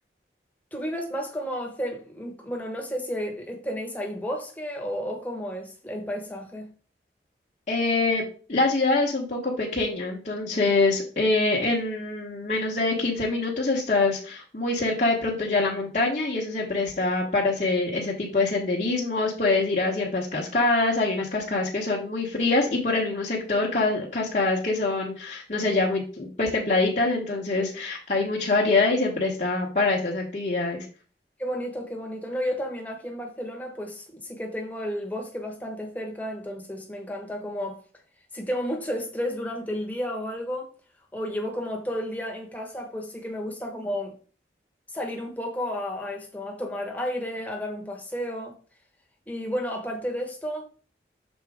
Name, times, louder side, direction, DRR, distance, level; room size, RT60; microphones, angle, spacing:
voice 1, 0.7-6.7 31.4-37.8 38.3-40.7 41.1-44.2 44.9-48.5 49.3-50.7, equal, 10° left, 1.2 m, -32 dB
voice 2, 7.7-8.2 8.5-30.9, left 3 dB, 45° left, 1.1 m, -25 dB
6.2 x 4.4 x 3.5 m
head